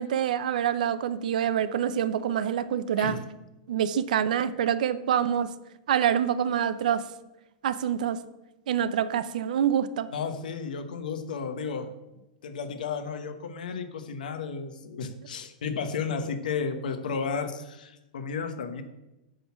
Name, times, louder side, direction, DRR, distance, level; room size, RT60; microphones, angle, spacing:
voice 1, 0.0-3.2 3.7-5.5 5.9-7.0 7.6-8.2 8.7-10.1, right 9 dB, 70° right, 15 dB, 0.5 m, -26 dB
voice 2, 10.1-11.9 12.4-18.8, left 5 dB, 90° left, 8 dB, 1.1 m, -33 dB
8.9 x 3.9 x 7.1 m, 0.99 s
supercardioid pair, 165°, 4 cm